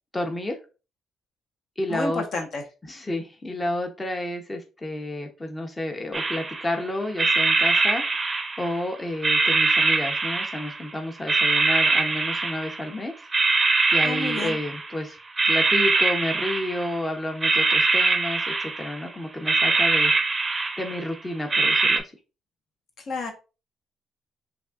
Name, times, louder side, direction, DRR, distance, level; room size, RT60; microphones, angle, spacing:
voice 1, 0.1-0.6 1.8-2.2 2.8-8.1 8.6-13.1 13.9-15.2 15.5-20.1 20.8-22.0, left 1 dB, 20° left, 4 dB, 0.6 m, -30 dB
voice 2, 1.9-2.6 14.0-14.6 23.1-23.3, left 3 dB, 65° left, 4 dB, 0.9 m, -30 dB
sound 1, 6.1-6.8 7.2-8.9 9.2-10.9 11.3-12.9 13.3-15.0 15.4-17.0 17.4-19.1 19.5-21.1 21.5-22.0, right 3 dB, 25° right, 0.5 m, -23 dB
5.1 x 2.5 x 2.3 m, 0.32 s
cardioid pair, 90°, 0 cm